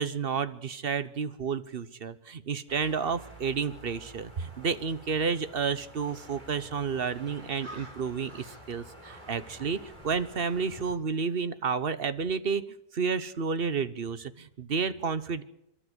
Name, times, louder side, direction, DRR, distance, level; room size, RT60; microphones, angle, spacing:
voice 1, 0.0-12.6 12.9-15.4, right 5 dB, 40° right, 13 dB, 1.0 m, -31 dB
sound 1, 2.7-10.9, right 1 dB, 25° right, 5.1 m, -49 dB
28.0 x 12.5 x 8.1 m, 0.83 s
omnidirectional pair, 1.8 m